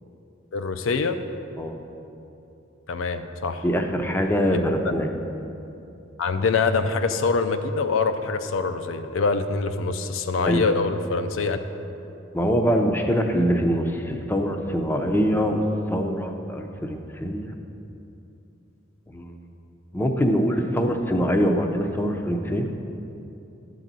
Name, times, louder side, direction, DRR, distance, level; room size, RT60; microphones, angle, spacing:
voice 1, 0.5-1.2 2.9-3.6 4.5-4.6 6.2-11.6, left 4 dB, 75° left, 8 dB, 0.5 m, -24 dB
voice 2, 3.6-5.1 10.5-10.6 12.3-17.5 19.1-19.5 19.9-22.7, equal, 10° left, 3 dB, 0.6 m, -23 dB
11.0 x 4.0 x 7.4 m, 2.8 s
head